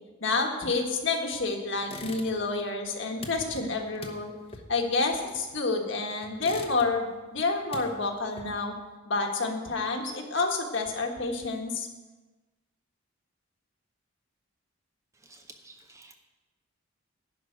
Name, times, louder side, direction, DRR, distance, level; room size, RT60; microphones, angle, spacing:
voice 1, 0.2-4.3 4.7-8.7 9.1-11.9, left 3 dB, 60° left, 2 dB, 1.5 m, -29 dB
sound 1, 1.8-2.6 2.9-5.8 6.2-7.2 7.5-8.8, left 2 dB, 25° left, 1.0 m, -44 dB
voice 2, 15.1-16.1, right 2 dB, 15° right, 4 dB, 0.6 m, -52 dB
11.0 x 5.3 x 8.6 m, 1.2 s
head